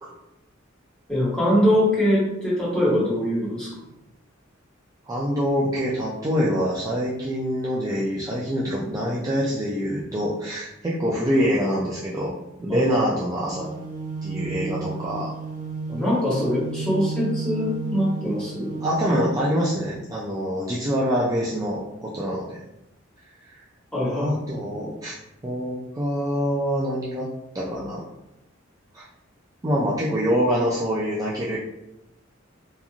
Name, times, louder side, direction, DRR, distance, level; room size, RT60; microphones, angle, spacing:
voice 1, 1.1-3.7 12.7-12.8 15.9-18.8 23.9-24.3, equal, 5° left, -9 dB, 1.2 m, -22 dB
voice 2, 5.1-12.3 12.6-13.7 14.2-15.3 18.8-22.6 23.4-23.6 24.1-25.2 25.4-27.3 27.5-28.0 28.9-29.1 29.6-31.6, equal, 20° right, -6 dB, 0.3 m, -25 dB
sound 1, 13.5-19.4, right 3 dB, 45° right, 1.2 m, -32 dB
2.9 x 2.4 x 2.4 m, 0.89 s
head